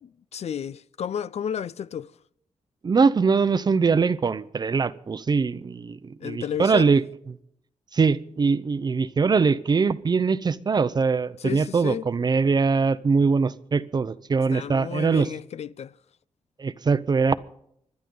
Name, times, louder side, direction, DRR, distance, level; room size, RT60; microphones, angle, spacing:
voice 1, 0.0-2.2 6.2-6.9 11.4-12.1 14.5-16.0, left 8 dB, 65° left, 0.5 m, -32 dB
voice 2, 2.8-7.0 7.9-15.3 16.6-17.3, right 5 dB, 35° right, 0.7 m, -22 dB
26.5 x 12.0 x 3.9 m
wide cardioid pair, 160°, 12 cm